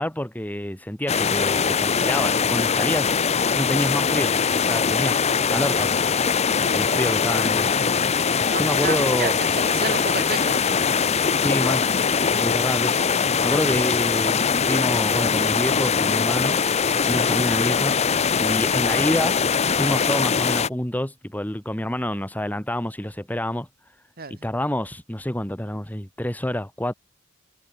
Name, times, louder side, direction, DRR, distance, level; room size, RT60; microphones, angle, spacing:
voice 1, 0.0-3.1 3.5-4.3 4.6-5.1 5.5-6.0 6.7-7.7 8.6-9.4 11.4-11.8 12.3-13.0 13.4-16.6 17.1-17.9 18.4-19.4 19.7-23.7 24.3-26.9, left 1 dB, 10° left, 1.6 m, -27 dB
sound 1, 1.1-20.7, left 6 dB, 30° left, 0.6 m, -22 dB
voice 2, 6.6-7.1 8.5-10.7 24.2-24.4, right 5 dB, 45° right, 2.0 m, -32 dB
head